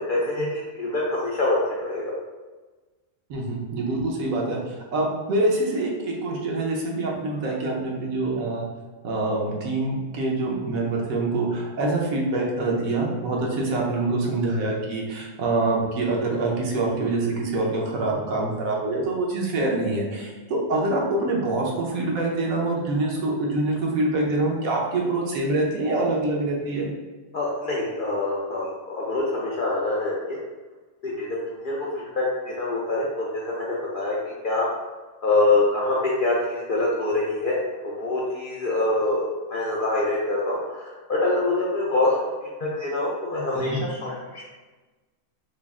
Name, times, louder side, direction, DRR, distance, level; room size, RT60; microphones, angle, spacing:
voice 1, 0.1-2.1 27.3-30.4 31.0-34.2 34.4-34.7 35.2-42.1 42.6-44.4, left 2 dB, 65° left, -5 dB, 0.5 m, -25 dB
voice 2, 3.3-8.7 9.0-26.9 43.5-43.9, right 2 dB, 90° right, -1 dB, 1.2 m, -25 dB
3.9 x 2.0 x 3.5 m, 1.3 s
omnidirectional pair, 1.4 m